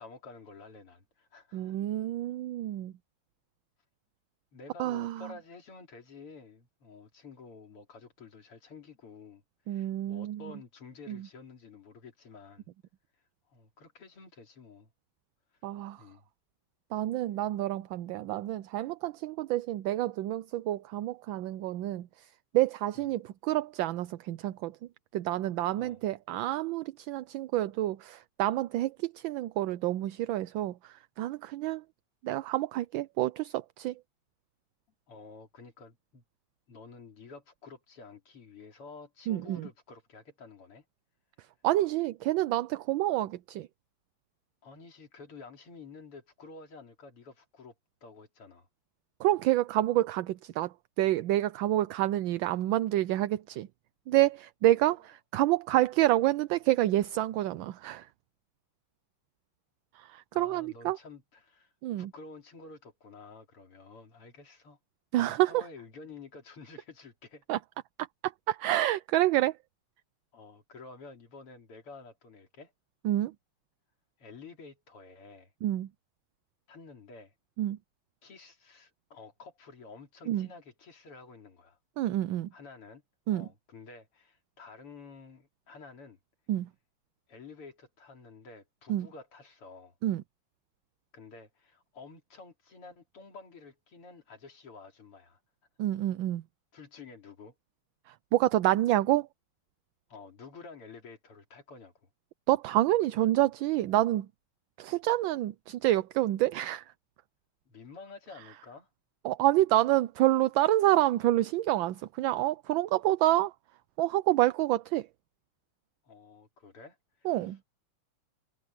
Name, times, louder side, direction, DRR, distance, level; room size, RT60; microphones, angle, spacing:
voice 1, 0.0-1.8 4.5-12.7 13.1-14.9 16.0-16.3 22.9-23.1 25.8-26.0 35.1-36.2 36.7-40.9 44.6-47.7 48.0-48.7 60.3-64.8 65.2-67.4 70.3-72.7 74.2-75.5 76.7-77.3 78.2-81.8 82.5-83.0 83.3-86.2 87.3-90.0 91.1-95.4 96.7-97.5 100.1-102.1 107.7-108.9 116.0-117.6, left 4 dB, 85° left, 4.2 m, -50 dB
voice 2, 1.5-2.9 4.8-5.2 9.7-10.4 11.1-11.2 15.6-16.0 16.9-22.3 22.5-24.8 25.1-31.8 32.2-34.0 39.3-39.7 41.6-43.7 49.2-53.7 54.1-58.1 59.9-61.0 61.8-62.1 65.1-65.6 67.5-67.6 68.2-69.6 73.0-73.3 75.6-75.9 77.6-77.8 80.3-80.5 82.0-82.5 83.3-83.5 86.5-86.7 88.9-89.1 90.0-90.2 95.8-96.4 98.1-99.3 102.5-104.3 104.8-106.9 109.2-113.5 114.0-115.1 117.2-117.6, right 15 dB, 75° right, 1.3 m, -28 dB
omnidirectional pair, 2.4 m